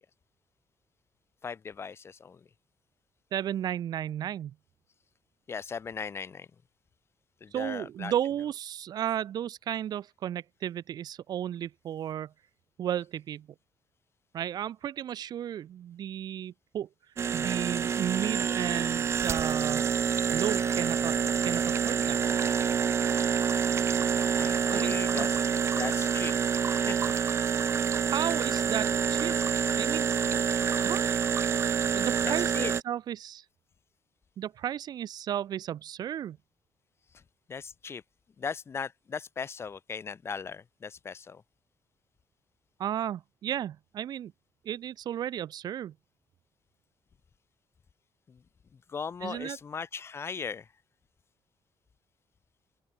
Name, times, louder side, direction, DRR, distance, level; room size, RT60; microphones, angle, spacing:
voice 1, 1.4-2.5 5.5-6.5 7.4-8.1 24.4-25.4 25.8-26.4 26.7-27.2 32.2-32.7 37.1-37.2 37.5-38.0 38.4-41.4 48.3-48.4 48.7-50.7, left 6 dB, 30° left, 3.7 m, -38 dB
voice 2, 3.3-4.5 7.5-12.3 12.8-13.5 14.3-16.9 17.3-19.9 20.3-22.2 24.7-25.3 28.1-29.3 29.8-30.1 30.8-31.3 31.9-33.4 34.4-36.4 42.8-44.3 44.6-45.9 49.2-49.6, right 10 dB, 60° right, 1.5 m, -34 dB
sound 1, 17.2-32.8, right 7 dB, 35° right, 0.8 m, -27 dB
open air
cardioid pair, 155°, 8 cm